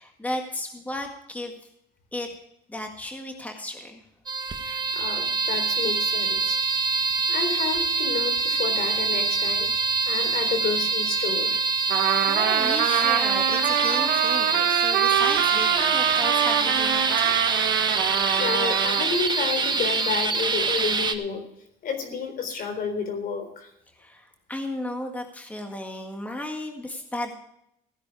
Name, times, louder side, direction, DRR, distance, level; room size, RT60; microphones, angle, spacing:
voice 1, 0.0-1.5 2.1-2.3 2.7-4.0 12.3-17.3 24.0-27.3, left 1 dB, 10° left, 3 dB, 1.8 m, -34 dB
sound 1, 4.3-21.1, right 4 dB, 25° right, 1.5 m, -25 dB
voice 2, 4.6-6.6 7.3-9.7 10.1-11.7 14.7-14.8 18.0-21.4 21.8-23.7, left 6 dB, 60° left, 6 dB, 3.8 m, -31 dB
Trumpet, 11.9-19.1, right 10 dB, 90° right, 1.8 m, -25 dB
16.5 x 10.0 x 4.8 m, 0.76 s
cardioid pair, 110°, 17 cm